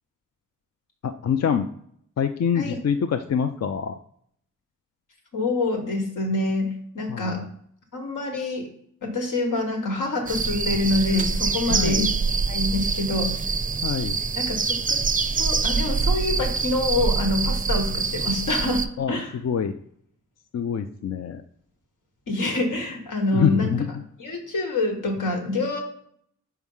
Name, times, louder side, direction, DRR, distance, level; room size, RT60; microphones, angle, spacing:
voice 1, 1.0-1.7 2.2-4.0 7.1-7.5 11.7-12.1 13.8-14.2 19.0-19.7 20.5-21.4 23.3-24.0, left 7 dB, 55° left, 8 dB, 0.5 m, -25 dB
voice 2, 5.3-7.4 7.9-8.7 9.0-12.1 12.5-13.3 14.3-15.0 15.3-19.3 22.3-23.7 24.2-25.8, left 2 dB, 85° left, 2 dB, 1.5 m, -26 dB
sound 1, 10.3-18.9, right 4 dB, 25° right, 0.4 m, -25 dB
4.6 x 4.5 x 5.5 m, 0.68 s
wide cardioid pair, 75°, 31 cm